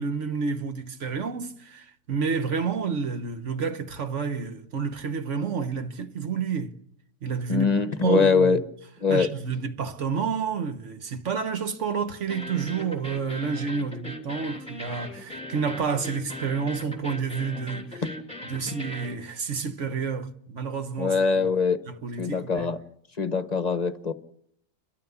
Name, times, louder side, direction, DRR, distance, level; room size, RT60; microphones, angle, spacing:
voice 1, 0.0-6.7 7.2-7.7 8.0-8.6 9.1-18.1 18.5-21.5 21.9-22.7, right 6 dB, 60° right, 1.4 m, -29 dB
voice 2, 7.5-8.6 9.0-9.3 18.6-18.7 21.0-21.8 22.2-22.8 23.2-24.1, left 5 dB, 35° left, 0.9 m, -23 dB
sound 1, 12.3-19.2, left 1 dB, 5° left, 3.1 m, -39 dB
29.5 x 13.5 x 7.1 m
omnidirectional pair, 1.4 m